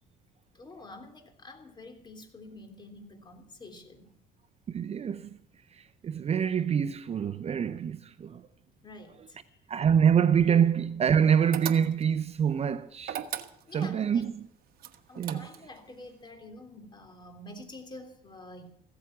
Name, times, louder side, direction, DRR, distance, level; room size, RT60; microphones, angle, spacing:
voice 1, 0.5-4.1 8.8-9.6 10.5-10.6 13.7-14.2 15.1-18.7, left 2 dB, 25° left, 3.3 m, -47 dB
voice 2, 4.7-5.4 5.7-8.5 9.7-13.2 13.7-14.5 15.2-15.5, right 8 dB, 40° right, 0.7 m, -26 dB
sound 1, 11.5-12.2 13.0-13.9 14.8-15.8, right 10 dB, 65° right, 1.2 m, -37 dB
16.0 x 13.5 x 6.0 m
cardioid pair, 110°, 17 cm